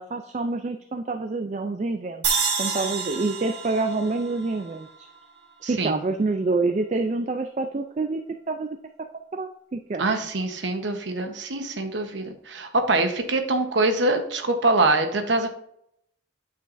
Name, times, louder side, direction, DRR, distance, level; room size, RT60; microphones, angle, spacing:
voice 1, 0.0-5.1 5.6-8.2 8.5-8.8 9.3-10.0, right 3 dB, 40° right, 7 dB, 0.4 m, -27 dB
sound 1, 2.2-5.5, right 5 dB, 70° right, 1.4 m, -29 dB
voice 2, 5.6-6.0 10.0-15.5, right 2 dB, 85° right, 6 dB, 1.0 m, -24 dB
9.3 x 5.6 x 2.6 m, 0.72 s
head